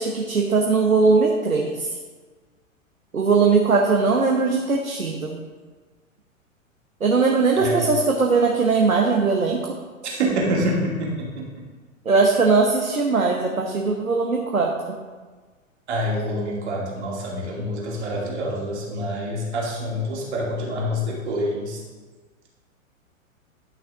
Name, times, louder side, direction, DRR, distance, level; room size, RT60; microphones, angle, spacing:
voice 1, 0.0-1.9 3.1-5.4 7.0-9.8 12.0-15.0, right 4 dB, 85° right, 1 dB, 1.1 m, -20 dB
voice 2, 7.6-7.9 10.0-11.3 15.9-21.8, equal, 55° right, -3 dB, 2.6 m, -26 dB
11.5 x 5.9 x 3.6 m, 1.4 s
figure-of-eight pair, 105°, 41 cm